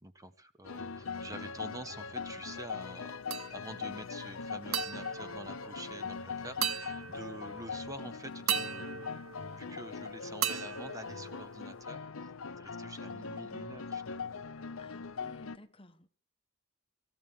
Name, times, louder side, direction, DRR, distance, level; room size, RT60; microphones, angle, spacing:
voice 1, 0.0-12.1 12.6-14.4, right 1 dB, 15° right, 0.9 m, -47 dB
sound 1, 0.6-15.6, left 5 dB, 70° left, 0.8 m, -41 dB
sound 2, 3.3-3.9 4.7-6.2 6.6-7.6 8.5-10.0 10.4-11.8, right 9 dB, 75° right, 1.0 m, -37 dB
voice 2, 14.8-16.1, left 1 dB, 25° left, 1.1 m, -55 dB
26.0 x 14.5 x 3.6 m
head